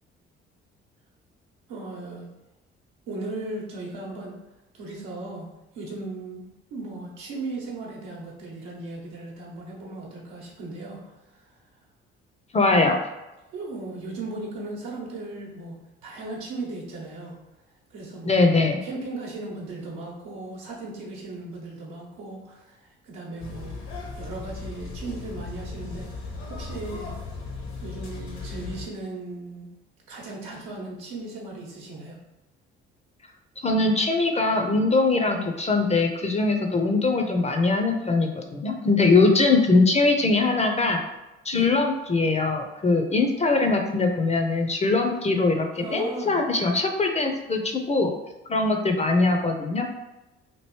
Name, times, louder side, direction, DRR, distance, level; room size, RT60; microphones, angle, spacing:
voice 1, 1.7-2.3 3.1-4.4 4.7-11.1 13.5-17.4 17.9-18.4 18.8-23.8 24.1-27.1 27.8-29.7 30.1-32.2 41.5-41.8 45.8-46.4, right 2 dB, 70° right, -3 dB, 0.9 m, -37 dB
voice 2, 12.5-13.0 18.3-18.8 33.6-41.0 41.4-48.1 48.5-49.9, left 3 dB, 20° left, 4 dB, 0.5 m, -22 dB
sound 1, 23.4-28.9, left 3 dB, 65° left, 0.8 m, -37 dB
2.9 x 2.6 x 3.0 m, 0.99 s
hypercardioid pair, 50°, 31 cm